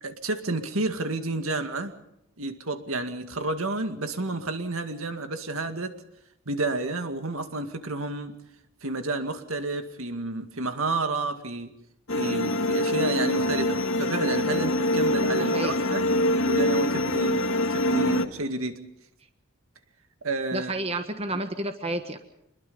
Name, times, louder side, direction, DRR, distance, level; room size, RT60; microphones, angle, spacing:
voice 1, 0.0-1.9 2.4-5.9 6.5-8.3 8.8-11.7 12.2-16.1 16.4-18.8 20.2-20.7, right 2 dB, 75° right, 7 dB, 2.1 m, -30 dB
sound 1, 12.1-18.3, left 1 dB, 65° left, 1.6 m, -24 dB
voice 2, 15.3-15.8 20.5-22.2, right 2 dB, 25° right, 7 dB, 1.4 m, -31 dB
27.0 x 21.5 x 5.5 m, 0.83 s
head